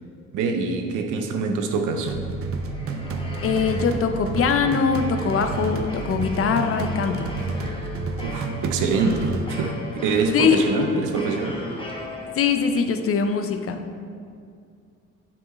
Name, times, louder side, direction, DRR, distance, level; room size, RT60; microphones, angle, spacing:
voice 1, 0.3-2.2 8.2-11.6, right 4 dB, 90° right, 5 dB, 0.6 m, -25 dB
sound 1, 2.1-9.5, right 4 dB, 50° right, 0.5 m, -30 dB
sound 2, 2.3-12.7, left 1 dB, 15° left, 0.9 m, -37 dB
voice 2, 3.4-7.3 10.3-10.8 12.3-14.0, left 6 dB, 50° left, 7 dB, 0.5 m, -22 dB
7.1 x 4.5 x 3.1 m, 2.3 s
cardioid pair, 90°, 30 cm